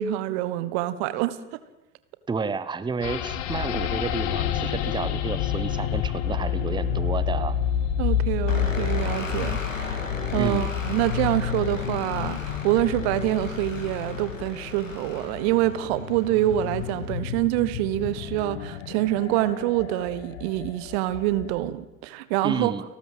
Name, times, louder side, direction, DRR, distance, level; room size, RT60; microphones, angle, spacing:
voice 1, 0.0-1.4 8.0-22.7, right 14 dB, 55° right, 15 dB, 1.3 m, -26 dB
voice 2, 2.3-7.6 10.3-10.7 22.4-22.8, right 4 dB, 10° right, 14 dB, 1.0 m, -31 dB
sound 1, 3.0-21.7, left 9 dB, 55° left, 1.9 m, -29 dB
sound 2, 8.5-17.2, left 3 dB, 80° left, 3.0 m, -38 dB
29.5 x 13.0 x 7.8 m, 1.0 s
figure-of-eight pair, 65°, 38 cm